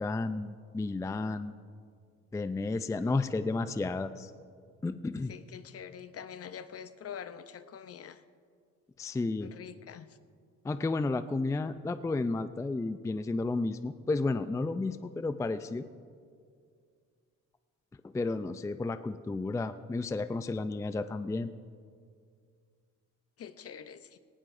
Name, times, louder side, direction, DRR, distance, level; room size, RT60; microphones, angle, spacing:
voice 1, 0.0-1.5 2.3-4.3 4.8-5.3 9.0-9.5 10.6-15.8 18.0-21.5, left 3 dB, 10° left, 11 dB, 0.4 m, -32 dB
voice 2, 5.3-8.2 9.4-10.2 23.4-24.2, left 8 dB, 50° left, 11 dB, 0.7 m, -45 dB
18.5 x 17.5 x 2.6 m, 2.2 s
cardioid pair, 90°, 30 cm